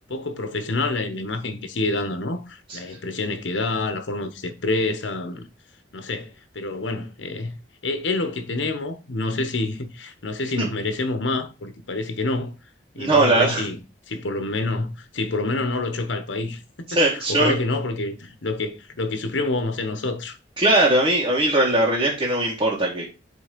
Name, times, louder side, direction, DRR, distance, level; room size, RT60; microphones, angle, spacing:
voice 1, 0.1-5.5 5.9-7.5 7.8-12.5 12.9-13.8 14.1-20.4, left 2 dB, 85° left, 1.1 m, -27 dB
voice 2, 13.0-13.7 16.9-17.5 20.6-23.0, right 2 dB, 25° right, 1.8 m, -20 dB
8.0 x 3.5 x 5.2 m
head